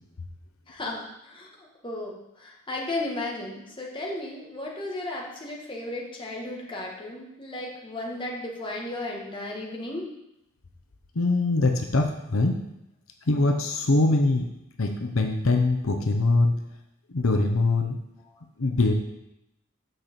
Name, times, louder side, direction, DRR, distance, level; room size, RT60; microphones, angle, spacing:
voice 1, 0.7-10.1, left 2 dB, 25° left, -2 dB, 1.7 m, -35 dB
voice 2, 11.2-12.6 13.3-14.5 14.8-16.5 17.1-18.0 18.6-18.9, left 2 dB, 75° left, 4 dB, 0.8 m, -23 dB
6.6 x 5.9 x 6.8 m, 0.86 s
head